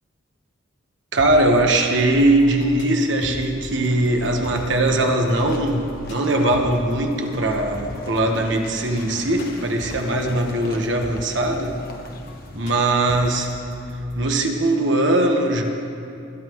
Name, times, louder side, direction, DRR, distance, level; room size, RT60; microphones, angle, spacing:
voice 1, 1.1-11.8 12.5-13.5 14.1-15.6, right 1 dB, 60° right, 3 dB, 1.2 m, -20 dB
sound 1, 1.2-14.3, equal, 60° left, 2.8 m, -39 dB
sound 2, 3.0-12.9, left 1 dB, 45° left, 1.1 m, -42 dB
20.5 x 12.0 x 3.1 m, 2.8 s
head